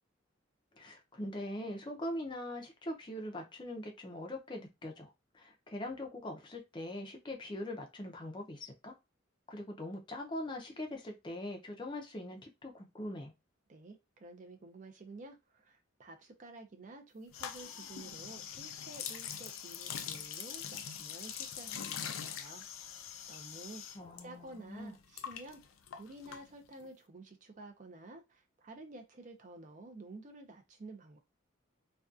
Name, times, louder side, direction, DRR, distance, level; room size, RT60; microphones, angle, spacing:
voice 1, 0.7-8.9 9.5-13.3 23.9-25.0, left 1 dB, 25° left, 0.5 m, -42 dB
voice 2, 13.7-22.6 23.3-25.6 26.0-31.2, right 2 dB, 40° right, 0.4 m, -51 dB
sound 1, 17.3-24.2 24.5-26.9, left 8 dB, 80° left, 0.4 m, -43 dB
2.5 x 2.2 x 2.3 m
head